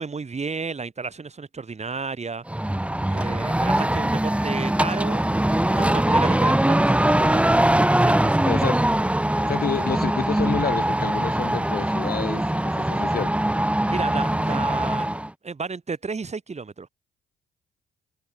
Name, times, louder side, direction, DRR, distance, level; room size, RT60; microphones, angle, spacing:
voice 1, 0.0-2.4 3.1-5.2 5.5-7.5 8.0-8.4 13.9-15.1 15.4-16.9, right 4 dB, 35° right, 2.9 m, -32 dB
sound 1, 2.5-15.3, right 1 dB, 5° right, 1.4 m, -22 dB
voice 2, 8.4-8.8 9.3-13.4, left 7 dB, 50° left, 2.4 m, -29 dB
supercardioid pair, 55°, 20 cm